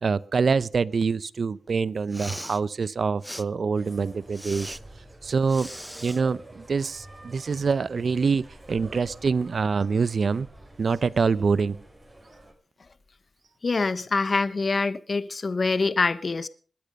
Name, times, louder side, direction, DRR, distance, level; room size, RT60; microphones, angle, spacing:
voice 1, 0.0-4.8 5.2-5.7 6.0-10.5 10.8-11.8, right 5 dB, 65° right, 0.7 m, -25 dB
Respiratory sounds, 2.0-2.6 3.2-3.4 4.3-4.8 5.5-6.2, equal, ahead, 0.8 m, -39 dB
sound 1, 3.7-12.5, right 1 dB, 20° right, 7.0 m, -48 dB
voice 2, 13.6-16.5, left 3 dB, 55° left, 0.9 m, -25 dB
21.0 x 10.5 x 5.4 m
cardioid pair, 55°, 0 cm